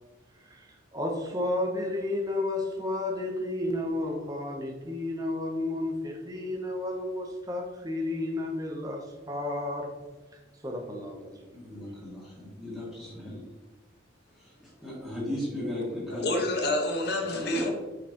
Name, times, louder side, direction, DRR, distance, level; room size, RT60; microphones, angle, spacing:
voice 1, 0.4-9.9 10.6-11.5, left 2 dB, 20° right, 0.8 m, -32 dB
voice 2, 11.5-13.4 14.4-16.4, left 1 dB, 5° right, 1.9 m, -36 dB
voice 3, 16.1-17.7, left 1 dB, 50° left, 1.1 m, -28 dB
6.2 x 5.3 x 2.9 m
head